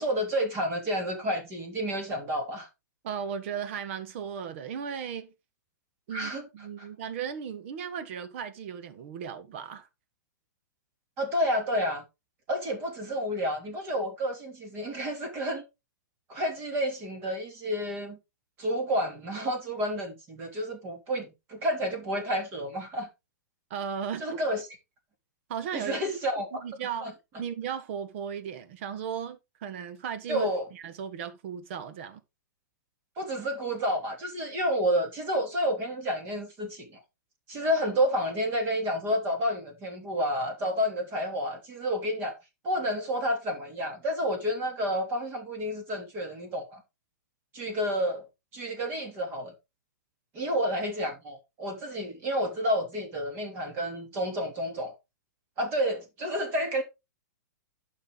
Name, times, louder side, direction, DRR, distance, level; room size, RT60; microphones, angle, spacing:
voice 1, 0.0-2.7 6.1-6.5 6.8-6.9 11.2-12.0 12.5-15.6 16.3-18.2 18.6-23.1 24.2-24.6 25.7-26.5 27.0-27.1 30.3-30.7 33.2-37.0 37.5-42.3 42.6-46.8 47.5-48.2 48.5-49.5 50.3-54.9 55.6-56.8, equal, 20° right, 3.0 m, -30 dB
voice 2, 3.0-5.3 6.1-9.9 23.7-24.4 25.5-25.9 26.5-27.1 27.4-32.2, right 7 dB, 40° right, 1.4 m, -36 dB
11.5 x 5.6 x 3.9 m
hypercardioid pair, 170°, 10 cm